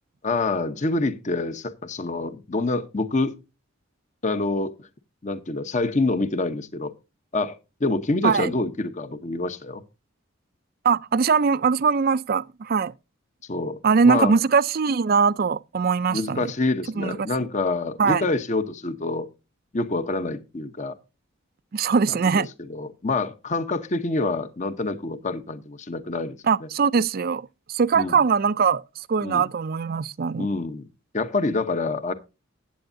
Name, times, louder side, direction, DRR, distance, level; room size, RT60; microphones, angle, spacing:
voice 1, 0.2-3.3 4.2-4.9 5.2-6.9 7.3-9.8 13.5-14.3 16.1-19.3 19.7-21.0 22.1-22.4 22.7-26.7 27.9-28.2 29.2-29.5 30.4-30.9 31.1-32.1, left 2 dB, 35° left, 0.8 m, -27 dB
voice 2, 10.8-12.9 13.8-16.5 17.0-17.2 18.0-18.2 21.7-22.5 26.5-30.5, right 5 dB, 45° right, 0.4 m, -21 dB
14.5 x 9.1 x 2.6 m
head